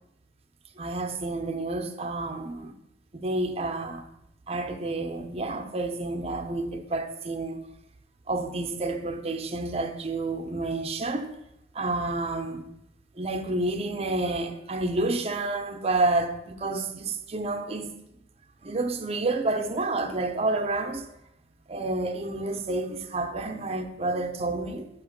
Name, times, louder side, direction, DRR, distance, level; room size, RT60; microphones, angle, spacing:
voice 1, 0.8-2.7 3.1-4.1 4.5-7.7 8.3-11.4 11.7-12.7 13.2-17.9 18.6-21.1 21.7-24.9, right 2 dB, 35° right, 0.5 m, -29 dB
8.7 x 2.9 x 5.1 m
head